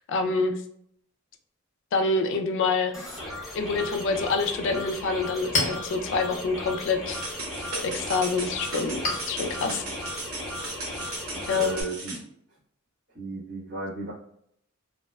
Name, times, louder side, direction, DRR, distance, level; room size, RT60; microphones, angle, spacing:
voice 1, 0.1-0.6 1.9-3.0 3.6-7.2 7.8-9.8 11.5-11.7, left 4 dB, 65° left, 6 dB, 0.3 m, -26 dB
sound 1, 2.9-11.8, left 1 dB, ahead, 0.6 m, -37 dB
Chink clink, 5.0-12.1, left 2 dB, 40° left, 0.8 m, -36 dB
sound 2, 7.1-12.2, right 2 dB, 80° right, 0.8 m, -37 dB
voice 2, 9.6-9.9 11.3-12.2 13.1-14.1, right 2 dB, 50° right, -11 dB, 0.9 m, -35 dB
2.7 x 2.1 x 2.2 m, 0.70 s
head